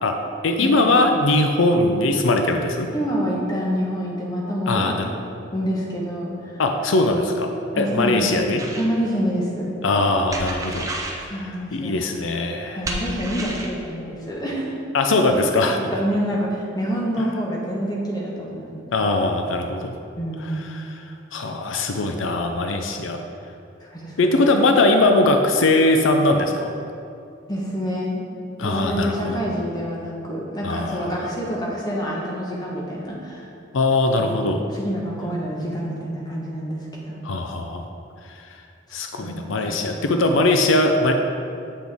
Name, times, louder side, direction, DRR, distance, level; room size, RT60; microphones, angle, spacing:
voice 1, 0.4-2.9 4.7-5.1 6.6-8.6 9.8-10.9 11.2-11.3 11.7-12.8 14.9-15.8 18.9-19.9 20.4-21.0 21.3-23.2 24.2-26.7 28.6-29.4 30.6-31.2 33.7-34.6 37.2-37.8 38.3-38.4 38.9-41.1, left 2 dB, 80° left, 4 dB, 0.5 m, -20 dB
voice 2, 2.9-5.0 5.5-6.6 7.7-8.3 8.7-9.7 11.2-12.1 12.8-14.8 15.1-15.2 15.7-18.7 20.2-20.7 23.8-24.5 27.5-28.3 28.6-33.5 34.2-37.2 38.9-40.0, equal, 20° left, -4 dB, 1.2 m, -27 dB
sound 1, 8.6-8.9 10.3-11.2 12.8-13.8, right 1 dB, 15° right, 0.7 m, -30 dB
8.0 x 6.0 x 3.6 m, 2.5 s
head